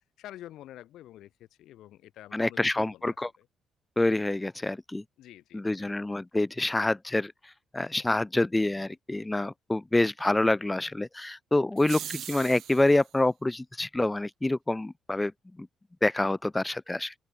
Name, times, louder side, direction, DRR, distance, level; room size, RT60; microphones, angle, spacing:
voice 1, 0.0-3.5 5.2-6.0, left 13 dB, 80° left, 7.1 m, -48 dB
voice 2, 2.3-3.3 4.0-5.0 5.5-15.3 15.6-15.7 16.0-17.1, left 2 dB, 15° left, 1.0 m, -27 dB
sound 1, 11.8-13.1, right 11 dB, 75° right, 3.6 m, -40 dB
open air
cardioid pair, 90°, 0 cm